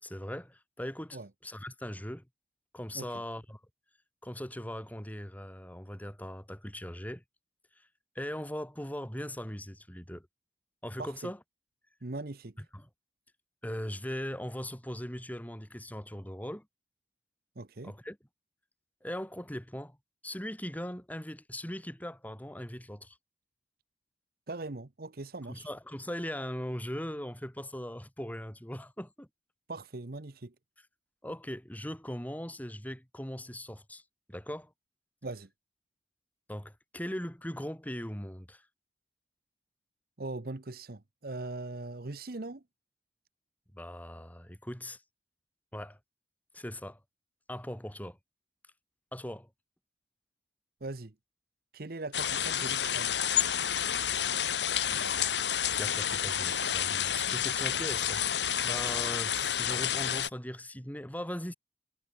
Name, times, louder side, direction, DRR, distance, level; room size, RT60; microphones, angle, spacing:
voice 1, 0.0-2.3 2.7-3.6 4.2-7.2 8.2-10.3 10.8-11.4 12.7-12.9 13.6-16.7 17.8-18.2 19.0-20.0 20.2-23.2 25.5-29.3 31.2-34.0 34.3-34.7 36.5-38.7 43.7-45.0 45.7-46.0 46.5-47.0 47.5-48.2 49.1-49.5 54.9-55.4 55.8-61.5, equal, 10° left, 5.6 m, -39 dB
voice 2, 11.0-11.3 12.0-12.5 17.6-17.9 24.5-25.7 29.7-30.5 35.2-35.5 40.2-42.6 50.8-51.1 51.7-53.2, right 2 dB, 60° right, 1.0 m, -40 dB
sound 1, 52.1-60.3, left 9 dB, 85° left, 1.8 m, -30 dB
head